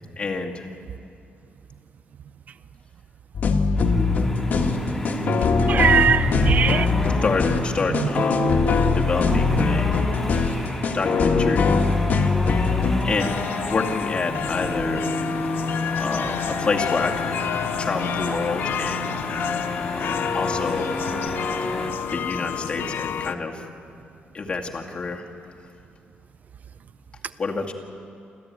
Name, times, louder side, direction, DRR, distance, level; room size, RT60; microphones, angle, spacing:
voice 1, 0.2-0.7 4.5-4.6 7.1-8.6 8.9-10.0 10.9-11.7 12.4-12.7 13.0-13.4 13.6-15.1 15.9-17.4 17.8-19.1 19.9-20.9 21.6-21.7 22.1-23.7 24.3-25.3 27.4-27.7, left 4 dB, 35° left, 0 dB, 2.4 m, -28 dB
sound 1, 3.3-13.0, left 5 dB, 55° left, 1.7 m, -21 dB
sound 2, 3.7-21.9, left 1 dB, 10° left, 3.3 m, -30 dB
voice 2, 5.7-7.2 9.7-9.8, right 7 dB, 50° right, 14 dB, 0.5 m, -21 dB
sound 3, 13.2-23.3, left 8 dB, 75° left, 0.7 m, -29 dB
28.0 x 13.5 x 9.7 m, 2.5 s
cardioid pair, 135°, 4 cm